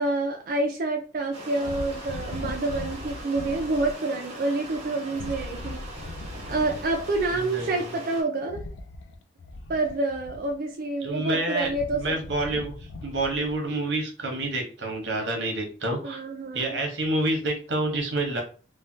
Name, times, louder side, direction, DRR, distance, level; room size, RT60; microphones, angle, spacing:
voice 1, 0.0-5.8 6.5-8.6 9.7-12.2 16.0-16.8, right 2 dB, 50° right, 1 dB, 0.4 m, -28 dB
sound 1, 1.3-8.2, right 1 dB, 35° right, 0.9 m, -41 dB
sound 2, 1.6-3.9 5.1-7.4 8.4-10.7 11.3-13.7, left 2 dB, 80° left, 0.4 m, -39 dB
voice 2, 7.3-7.9 11.0-12.7 13.0-16.2 16.5-18.4, right 2 dB, 75° right, 3 dB, 0.8 m, -28 dB
3.1 x 2.1 x 2.6 m, 0.39 s
head